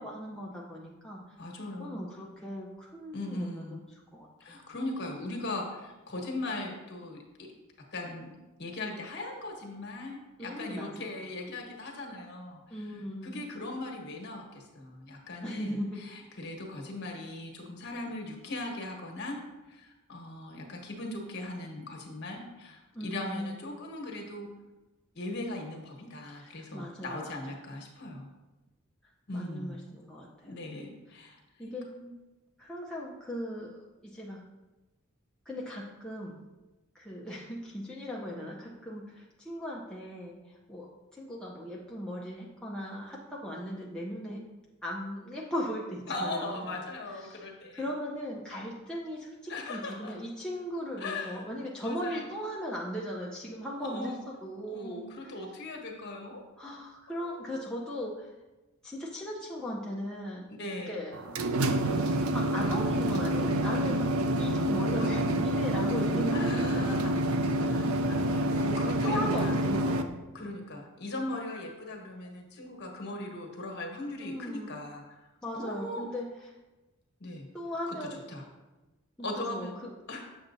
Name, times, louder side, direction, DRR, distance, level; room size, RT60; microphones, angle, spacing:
voice 1, 0.0-1.2 1.8-3.8 4.1-4.6 10.4-11.1 12.7-13.4 15.4-16.0 22.9-23.5 26.4-27.4 29.3-30.6 31.6-31.9 32.6-34.4 35.5-36.4 36.9-40.3 40.7-44.4 44.8-46.6 47.2-47.5 47.7-54.1 54.4-55.1 56.6-58.3 58.8-60.5 60.9-61.2 61.9-64.1 64.4-67.3 69.0-70.2 74.2-74.7 75.4-76.3 77.5-78.2 79.2-79.9, equal, 5° left, -5 dB, 0.6 m, -38 dB
voice 2, 1.4-2.1 3.1-3.8 4.4-7.5 7.8-12.9 13.2-19.4 19.7-24.5 25.1-28.3 29.3-29.8 30.4-32.1 46.1-47.8 49.5-50.1 51.0-51.5 51.8-52.3 53.8-54.2 54.7-56.4 57.1-57.6 60.6-61.0 65.0-65.3 66.3-69.5 70.3-75.0 75.5-76.1 77.2-77.5 77.9-78.0 78.3-78.4 79.2-79.7 80.1-80.3, left 2 dB, 55° left, 1 dB, 1.3 m, -39 dB
sound 1, 61.1-70.0, right 1 dB, 75° right, 0.5 m, -28 dB
7.1 x 7.1 x 2.6 m, 1.1 s
head